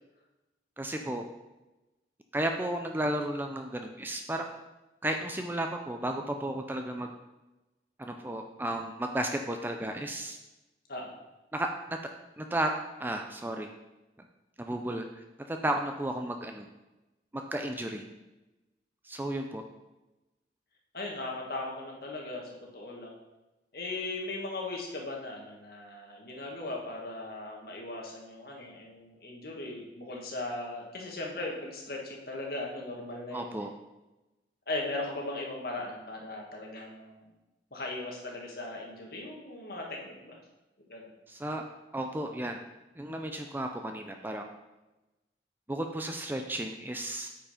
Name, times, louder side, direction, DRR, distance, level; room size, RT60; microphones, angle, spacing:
voice 1, 0.8-1.3 2.3-4.6 5.0-7.1 8.0-10.4 11.5-12.0 12.4-12.7 13.0-13.7 14.6-15.1 15.5-16.7 17.3-18.1 19.0-19.6 33.3-33.7 41.3-41.6 41.9-42.6 43.0-44.5 45.7-47.3, right 1 dB, 10° right, 4 dB, 0.4 m, -33 dB
voice 2, 20.9-23.2 23.7-33.7 34.7-37.3 37.7-40.4 40.9-41.1, left 2 dB, 55° left, -1 dB, 1.7 m, -38 dB
8.8 x 4.9 x 5.0 m, 1.0 s
head